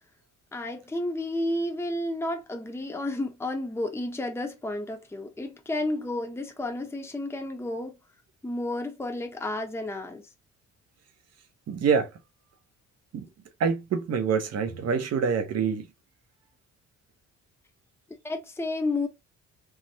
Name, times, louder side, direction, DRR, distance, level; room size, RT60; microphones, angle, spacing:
voice 1, 0.5-8.0 8.4-10.3 18.2-19.1, left 1 dB, 10° left, 0.8 m, -31 dB
voice 2, 11.7-12.1 13.1-13.3 13.6-15.9, right 6 dB, 55° right, 0.9 m, -26 dB
3.5 x 2.1 x 2.7 m
cardioid pair, 90°, 30 cm